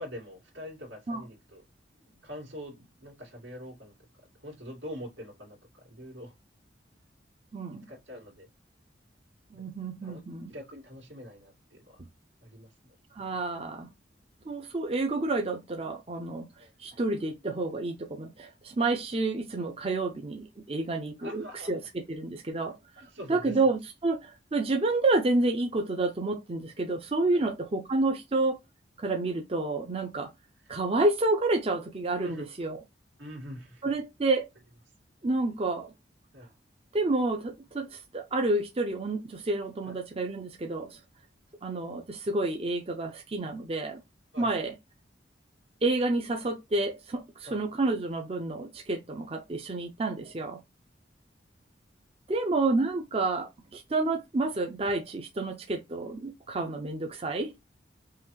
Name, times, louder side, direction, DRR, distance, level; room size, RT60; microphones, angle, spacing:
voice 1, 0.0-1.6 2.0-3.9 4.4-5.6 5.8-6.3 7.9-8.5 10.0-12.0 12.4-12.7 16.6-16.7 21.2-21.7 23.0-23.6 27.3-27.4 32.2-32.5 33.2-33.8 36.3-36.5 39.9-40.0 44.3-44.5 47.5-47.6 50.2-50.3, equal, 85° right, 2.1 m, -44 dB
voice 2, 7.5-7.9 9.5-10.5 13.1-13.9 14.5-16.5 16.8-23.0 23.3-28.6 29.0-30.3 30.7-32.8 33.8-34.5 35.2-35.9 36.9-41.0 41.6-44.0 44.4-44.7 45.8-50.6 52.3-57.6, right 2 dB, 30° right, 0.5 m, -29 dB
5.6 x 2.4 x 3.1 m
head